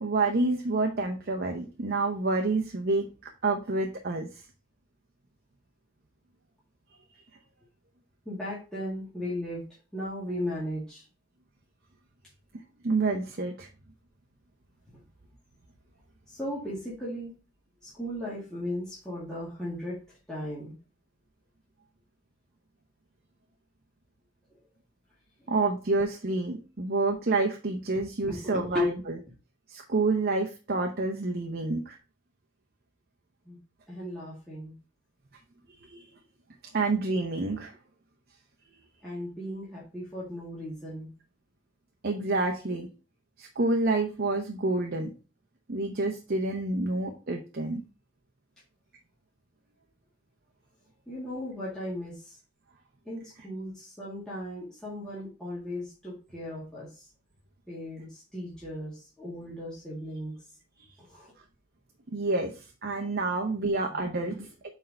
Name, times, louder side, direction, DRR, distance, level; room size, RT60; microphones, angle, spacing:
voice 1, 0.0-3.1 3.4-4.4 12.8-13.7 25.5-29.2 29.7-32.0 35.8-36.1 36.7-37.8 42.0-42.9 43.4-45.1 45.7-47.8 62.1-64.4, right 3 dB, 50° right, 3 dB, 0.8 m, -28 dB
voice 2, 8.3-9.6 9.9-11.0 16.3-17.3 17.8-20.0 20.3-20.7 28.2-28.8 33.5-33.6 33.9-34.7 39.0-41.1 51.1-52.4 53.1-57.0 57.7-60.4 61.1-61.3 63.7-64.0 64.3-64.4, left 1 dB, 5° left, -8 dB, 2.1 m, -36 dB
4.6 x 4.4 x 5.3 m, 0.34 s
head